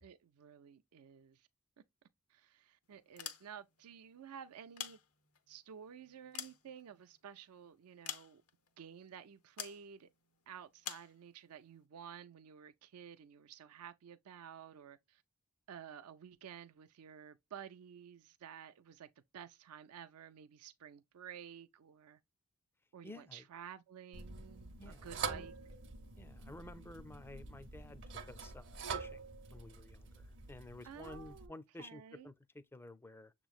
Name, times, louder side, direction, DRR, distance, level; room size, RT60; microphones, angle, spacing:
voice 1, 0.0-1.5 2.3-5.0 5.5-8.4 8.8-10.1 10.5-15.2 15.7-22.2 22.9-25.5 30.8-32.3, right 8 dB, 75° right, 0.4 m, -52 dB
sound 1, 3.0-3.8 4.5-5.5 6.0-7.3 8.0-8.7 9.6-9.8 10.8-11.1, left 10 dB, 90° left, 0.8 m, -46 dB
voice 2, 23.0-23.5 24.8-25.5 26.2-29.2 29.5-33.3, left 2 dB, 10° left, 0.4 m, -53 dB
sound 2, 24.1-31.5, right 5 dB, 55° right, 0.8 m, -46 dB
6.9 x 3.0 x 2.3 m
head